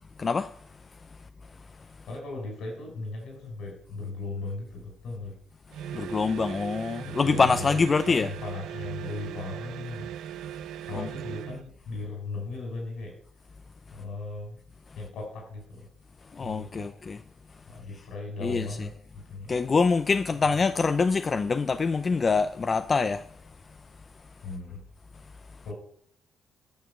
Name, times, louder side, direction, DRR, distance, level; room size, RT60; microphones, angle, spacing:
voice 1, 0.2-0.5 5.9-8.3 10.9-11.1 16.4-17.2 18.4-18.7 19.5-23.2, left 4 dB, 35° left, 0.5 m, -25 dB
voice 2, 2.1-5.4 7.0-10.1 10.9-13.2 13.9-14.6 15.0-15.9 16.4-17.0 17.7-19.6 24.4-24.8 25.6-25.7, left 3 dB, 75° left, 5.2 m, -37 dB
sound 1, 5.7-11.7, right 10 dB, 85° right, 0.5 m, -39 dB
9.5 x 6.3 x 7.1 m
cardioid pair, 90°, 0 cm